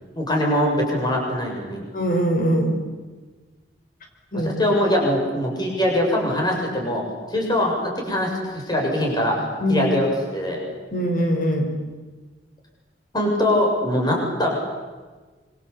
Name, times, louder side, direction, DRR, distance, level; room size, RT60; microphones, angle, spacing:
voice 1, 0.1-1.8 4.3-7.0 7.3-9.3 9.7-10.6 13.1-14.5, left 1 dB, 25° left, 0 dB, 7.3 m, -22 dB
voice 2, 1.9-2.8 4.3-4.5 9.6-9.9 10.9-11.7, equal, 50° left, 3 dB, 4.8 m, -21 dB
26.5 x 25.5 x 8.6 m, 1.3 s
head